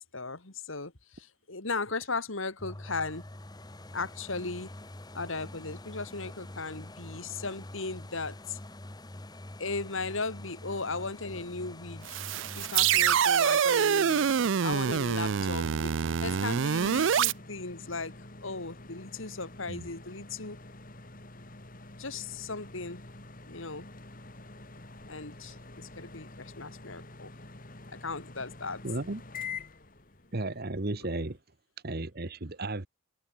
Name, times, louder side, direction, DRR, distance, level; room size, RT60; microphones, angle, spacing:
voice 1, 0.0-3.2 3.9-4.7 5.1-8.6 9.6-12.2 12.6-14.3 14.6-18.1 18.4-20.6 22.0-23.0 23.5-23.9 25.1-27.3 27.9-28.8, left 3 dB, 70° left, 2.6 m, -37 dB
sound 1, 2.6-16.3 16.8-16.9, left 1 dB, 20° left, 1.2 m, -46 dB
sound 2, 12.1-17.3, right 7 dB, 65° right, 0.5 m, -26 dB
sound 3, 14.9-31.4, left 3 dB, 40° left, 3.3 m, -47 dB
voice 2, 28.8-29.2 30.3-31.4 31.8-32.9, right 2 dB, 50° right, 1.2 m, -34 dB
head